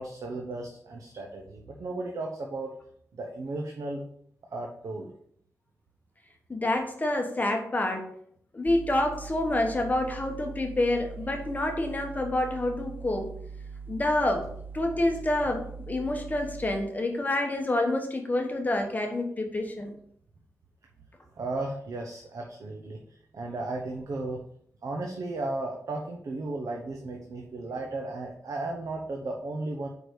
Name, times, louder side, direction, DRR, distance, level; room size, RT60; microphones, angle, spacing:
voice 1, 0.0-2.7 3.1-4.0 4.5-5.1 21.3-23.0 23.3-24.4 24.8-29.9, right 2 dB, 90° right, 0 dB, 1.0 m, -35 dB
voice 2, 6.5-8.1 8.5-13.3 13.9-14.5 14.7-19.9, left 1 dB, 30° left, 3 dB, 1.1 m, -28 dB
sound 1, 8.7-16.8, right 5 dB, 35° right, 0.5 m, -42 dB
4.9 x 4.9 x 6.2 m, 0.66 s
wide cardioid pair, 110°, 6 cm